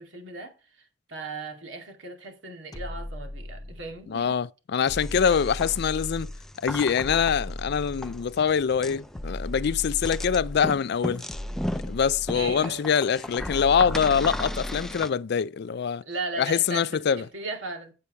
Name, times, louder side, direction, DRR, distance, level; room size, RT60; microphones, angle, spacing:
voice 1, 0.0-4.4 12.3-12.8 16.1-17.9, right 3 dB, 85° right, 2.3 m, -37 dB
sound 1, 2.7-4.0 4.9-6.5 7.0-8.4 9.1-10.8 11.3-12.7 13.4-15.0, left 1 dB, 20° left, 0.9 m, -36 dB
voice 2, 4.1-6.3 6.6-11.2 11.9-16.0 16.4-17.2, left 7 dB, 60° left, 0.4 m, -24 dB
sound 2, 5.0-15.1, left 1 dB, ahead, 0.4 m, -37 dB
8.4 x 7.7 x 4.6 m
head